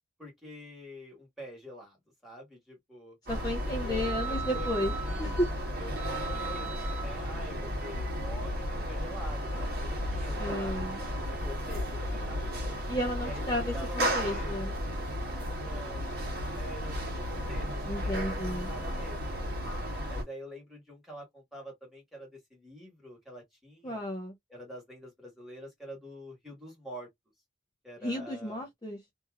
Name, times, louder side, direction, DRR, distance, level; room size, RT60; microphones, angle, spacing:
voice 1, 0.2-2.0 2.2-3.2 3.6-5.4 5.8-10.8 11.2-12.6 13.2-14.7 15.6-16.1 16.6-19.3 20.1-24.0 24.5-27.1 27.8-28.6, equal, ahead, 1.7 m, -46 dB
voice 2, 3.3-4.9 5.2-5.5 10.4-11.0 12.9-14.7 17.9-18.7 23.8-24.3 28.0-29.0, equal, 20° left, 0.6 m, -33 dB
sound 1, 3.3-20.2, equal, 55° right, 1.3 m, -33 dB
2.8 x 2.6 x 2.4 m
head